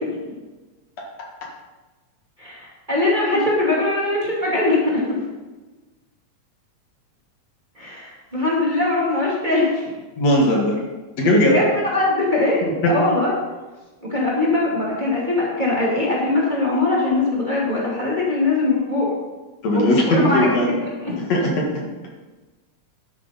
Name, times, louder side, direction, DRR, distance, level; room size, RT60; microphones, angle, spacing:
voice 1, 2.4-5.0 7.8-9.9 11.5-13.3 14.0-19.1 19.7-20.7 21.0-21.1, left 2 dB, 15° right, -6 dB, 2.4 m, -21 dB
voice 2, 10.2-10.8 11.2-11.6 12.8-12.9 19.6-20.7 21.2-21.7, left 1 dB, 65° left, -2 dB, 3.0 m, -18 dB
11.5 x 9.6 x 4.1 m, 1.2 s
omnidirectional pair, 3.3 m